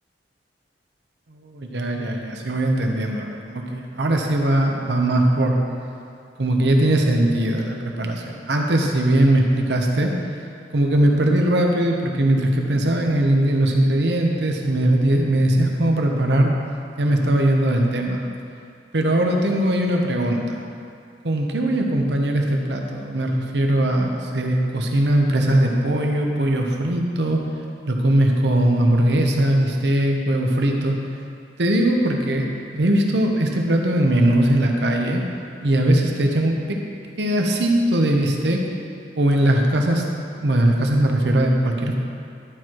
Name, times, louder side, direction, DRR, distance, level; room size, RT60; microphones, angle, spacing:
voice 1, 1.3-5.6 6.4-10.1 10.7-16.5 17.0-18.2 18.9-20.6 21.2-27.4 27.8-31.0 31.6-32.5 32.7-35.2 35.6-36.8 37.2-38.6 39.1-40.0 40.3-41.9, right 1 dB, 70° right, 1 dB, 0.9 m, -20 dB
11.5 x 4.5 x 4.7 m, 2.4 s
head